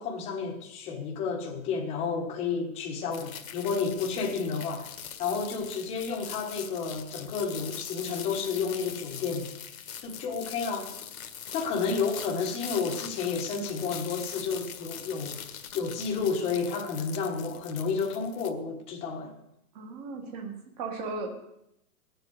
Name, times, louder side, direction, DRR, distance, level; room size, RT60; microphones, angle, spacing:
voice 1, 0.0-4.9 5.2-9.5 10.0-10.9 11.5-15.4 15.7-19.3, left 5 dB, 15° left, 1.4 m, -31 dB
sound 1, 3.1-18.5, left 8 dB, 65° left, 1.7 m, -42 dB
voice 2, 19.7-21.3, right 3 dB, 25° right, 1.8 m, -37 dB
18.0 x 7.8 x 8.0 m
hypercardioid pair, 165°, 45 cm